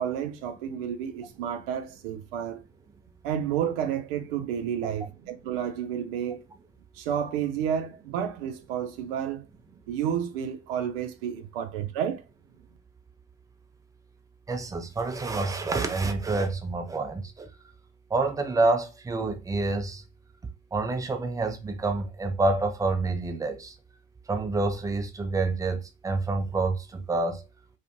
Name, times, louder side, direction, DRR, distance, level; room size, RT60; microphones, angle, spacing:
voice 1, 0.0-2.6 3.2-6.4 6.9-9.5 9.9-12.2, right 9 dB, 60° right, 0.5 m, -31 dB
voice 2, 14.5-17.5 18.1-20.0 20.7-23.7 24.3-27.4, right 3 dB, 10° right, 0.5 m, -28 dB
2.4 x 2.4 x 2.7 m
figure-of-eight pair, 60°, 31 cm